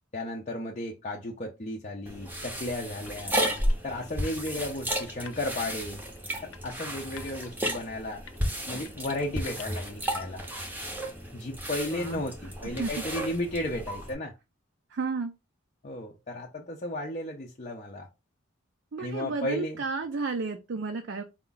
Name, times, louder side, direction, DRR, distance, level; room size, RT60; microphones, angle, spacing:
voice 1, 0.1-3.4 3.8-6.0 6.4-8.2 8.7-10.4 11.3-14.3 15.8-18.1 19.0-19.8, left 1 dB, 35° left, 0.5 m, -34 dB
sound 1, 2.1-14.1, equal, 10° right, 0.7 m, -33 dB
sound 2, 3.0-5.4 5.8-10.1, left 7 dB, 85° left, 0.5 m, -49 dB
voice 2, 11.9-12.2 12.6-12.9 14.9-15.3 18.9-21.2, right 4 dB, 55° right, 0.4 m, -32 dB
4.4 x 2.3 x 3.9 m
head